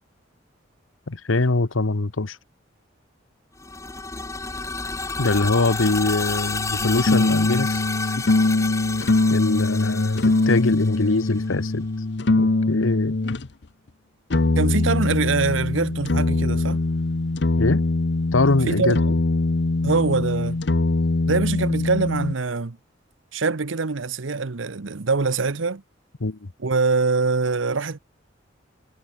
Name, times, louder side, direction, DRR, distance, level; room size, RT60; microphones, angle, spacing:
voice 1, 1.1-2.4 5.2-8.1 9.3-11.9 12.4-13.1 17.6-17.8 18.3-19.0 26.2-26.5, left 3 dB, 90° left, 1.1 m, -23 dB
sound 1, 3.6-11.4, left 4 dB, 15° left, 0.8 m, -31 dB
sound 2, 6.8-13.5 14.3-22.3, left 2 dB, 60° left, 0.8 m, -22 dB
voice 2, 14.6-16.8 18.7-19.1 19.8-20.6 21.3-22.8 23.3-25.8 26.6-28.0, right 4 dB, 75° right, 0.9 m, -24 dB
head